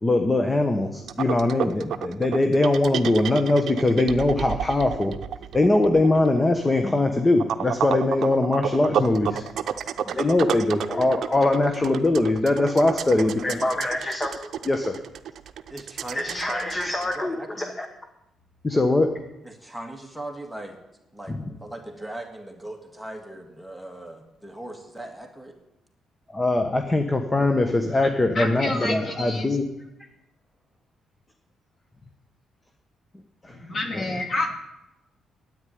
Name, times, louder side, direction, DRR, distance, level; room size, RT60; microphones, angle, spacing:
voice 1, 0.0-5.2 5.5-9.4 10.1-15.0 16.1-17.9 18.6-19.1 21.3-21.4 26.3-29.6 33.4-33.6 33.9-34.2, left 2 dB, 20° left, 6 dB, 1.1 m, -22 dB
sound 1, 1.1-17.2, right 9 dB, 65° right, 0.7 m, -31 dB
voice 2, 13.0-13.9 15.7-17.7 19.4-20.8 21.1-25.6, right 1 dB, ahead, 2 dB, 1.9 m, -39 dB
voice 3, 28.3-29.6 33.5-34.5, left 2 dB, 40° left, 3 dB, 2.9 m, -28 dB
9.8 x 9.1 x 9.3 m, 0.90 s
cardioid pair, 90°, 0 cm